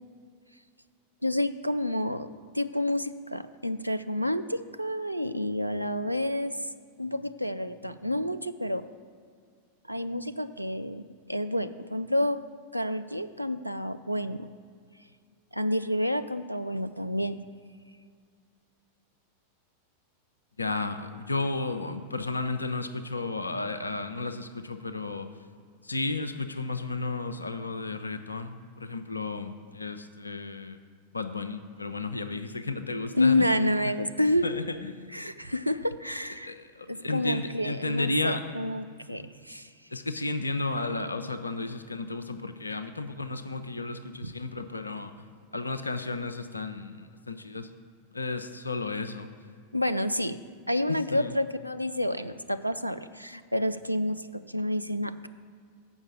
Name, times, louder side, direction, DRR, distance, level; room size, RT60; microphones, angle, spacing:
voice 1, 1.2-2.3 2.5-6.6 7.0-8.8 9.9-12.4 12.7-14.5 15.5-17.4 33.1-34.4 35.1-36.6 36.9-39.7 44.2-44.3 49.7-50.4 50.7-55.3, left 1 dB, 90° right, 9 dB, 0.3 m, -29 dB
voice 2, 20.6-25.3 25.8-30.8 31.1-33.5 34.4-35.2 36.4-38.5 39.9-45.1 45.5-47.7 48.1-49.3 51.1-51.3, left 3 dB, 80° left, 9 dB, 0.5 m, -33 dB
7.2 x 5.6 x 7.5 m, 2.1 s
figure-of-eight pair, 90°, 0 cm